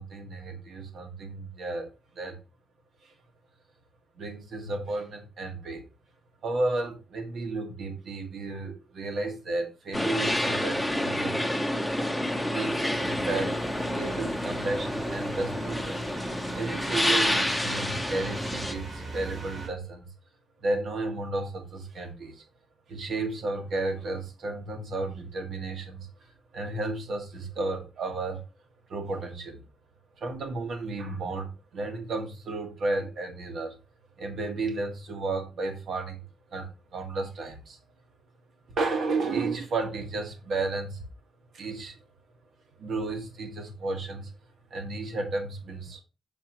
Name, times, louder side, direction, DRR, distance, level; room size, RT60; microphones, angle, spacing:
voice 1, 0.0-2.4 3.0-3.1 4.2-5.9 6.4-11.8 12.4-13.6 13.9-16.0 16.5-20.1 20.6-22.4 22.9-28.4 28.9-29.7 30.2-33.8 34.2-36.2 36.5-37.8 38.7-41.1 41.5-42.0 42.8-44.3 44.7-46.0, right 3 dB, 65° right, 1.8 m, -33 dB
sound 1, 9.9-18.7, left 1 dB, ahead, 1.0 m, -29 dB
sound 2, 12.9-19.7, right 2 dB, 50° right, 4.4 m, -40 dB
7.2 x 6.8 x 3.0 m
cardioid pair, 125°, 0 cm